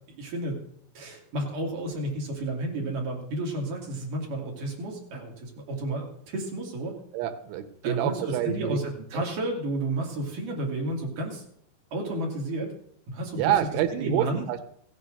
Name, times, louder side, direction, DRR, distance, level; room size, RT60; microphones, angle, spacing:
voice 1, 0.1-0.6 1.0-7.0 7.8-11.4 11.9-12.7 13.1-13.6 13.9-14.4, right 1 dB, 50° right, 0 dB, 3.5 m, -32 dB
voice 2, 7.1-8.8 9.1-9.3 13.3-14.7, right 11 dB, 85° right, 9 dB, 3.4 m, -27 dB
15.5 x 7.5 x 6.4 m, 0.67 s
omnidirectional pair, 5.2 m